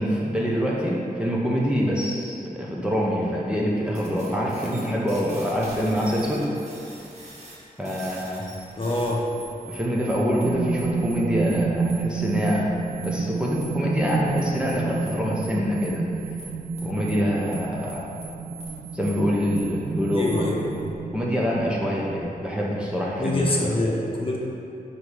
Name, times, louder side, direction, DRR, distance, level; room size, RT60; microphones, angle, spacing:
voice 1, 0.0-6.5 7.8-8.5 9.7-16.1 16.8-18.0 18.9-20.8 21.1-23.8, equal, 5° right, -5 dB, 0.7 m, -25 dB
sound 1, 3.9-20.8, right 3 dB, 50° right, 1.3 m, -44 dB
voice 2, 8.8-9.2 20.1-20.6 23.2-24.4, left 2 dB, 35° left, -2 dB, 0.9 m, -25 dB
sound 2, 10.4-22.2, right 4 dB, 85° right, 0.4 m, -30 dB
6.4 x 4.2 x 4.9 m, 2.8 s
wide cardioid pair, 145°, 15 cm